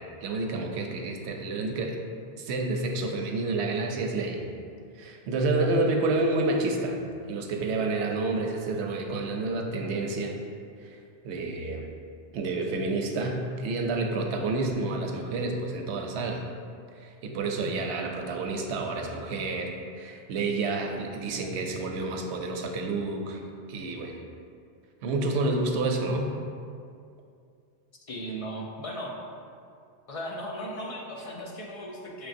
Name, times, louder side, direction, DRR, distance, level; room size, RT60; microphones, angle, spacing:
voice 1, 0.0-2.0 2.4-4.4 5.0-7.0 7.3-10.3 10.8-11.0 11.2-11.9 12.3-16.4 17.0-23.4 23.7-24.2 25.0-26.3, right 2 dB, 85° right, 3 dB, 0.8 m, -29 dB
voice 2, 28.1-29.1 30.1-32.3, equal, 45° left, -2 dB, 0.5 m, -37 dB
6.1 x 3.4 x 2.5 m, 2.4 s
omnidirectional pair, 1.1 m